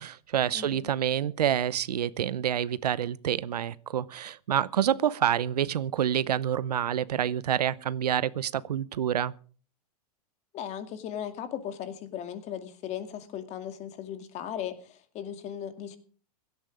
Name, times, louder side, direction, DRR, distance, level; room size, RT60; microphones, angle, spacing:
voice 1, 0.0-9.3, right 10 dB, 80° right, 0.8 m, -27 dB
voice 2, 0.5-0.9 10.5-16.0, left 9 dB, 35° left, 2.3 m, -37 dB
17.0 x 13.0 x 4.9 m
hypercardioid pair, 115°, 20 cm